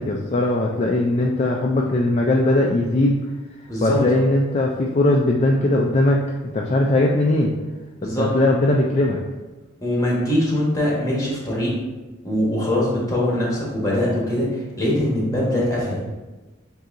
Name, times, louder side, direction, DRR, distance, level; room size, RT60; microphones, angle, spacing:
voice 1, 0.0-3.2 3.8-6.2 6.5-7.5 8.0-9.2, left 1 dB, 35° left, -1 dB, 0.3 m, -19 dB
voice 2, 3.7-4.0 8.0-8.3 9.8-11.7 12.2-16.0, left 1 dB, 15° left, -5 dB, 1.2 m, -22 dB
7.6 x 2.7 x 2.6 m, 1.2 s
head